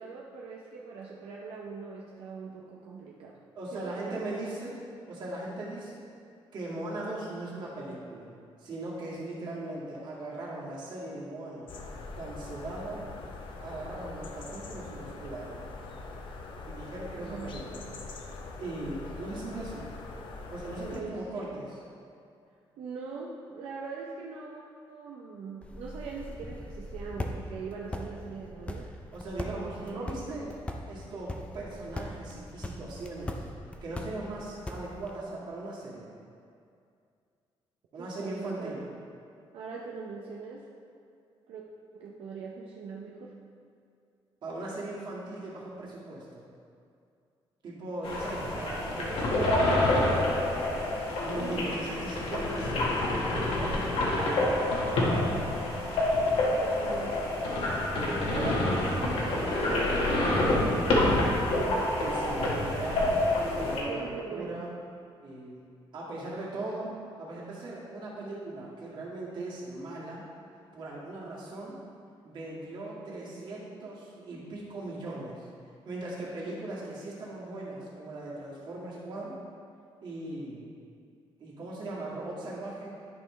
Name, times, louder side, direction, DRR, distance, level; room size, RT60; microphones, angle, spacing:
voice 1, 0.0-3.4 3.7-4.5 17.2-17.7 20.8-21.2 22.8-28.9 29.4-30.1 38.0-38.8 39.5-40.7 41.5-41.6 41.9-43.3 51.3-51.8 54.9-55.6 56.6-57.3 58.2-62.0 63.9-64.7, right 5 dB, 85° right, -3 dB, 0.7 m, -41 dB
voice 2, 3.5-4.8 5.1-6.1 6.5-8.3 8.6-11.7 12.2-13.1 13.6-15.6 16.7-17.9 18.6-19.8 20.5-21.8 29.1-30.6 30.9-33.4 33.8-36.1 37.9-38.8 44.4-46.4 47.6-50.4 51.2-52.8 53.1-54.1 62.0-63.1 63.5-64.7 65.2-65.6 65.9-70.2 70.7-71.8 72.2-75.5 75.8-79.4 80.0-80.7 81.4-83.0, right 2 dB, 55° right, -6 dB, 2.0 m, -39 dB
sound 1, 11.7-21.0, left 3 dB, 60° left, 0.7 m, -43 dB
Sonic Snap Mahdi, 25.6-35.2, left 1 dB, 10° left, 0.5 m, -41 dB
sound 2, 48.0-63.8, left 1 dB, 80° left, 1.5 m, -27 dB
10.5 x 5.4 x 3.2 m, 2.4 s
cardioid pair, 155°, 9 cm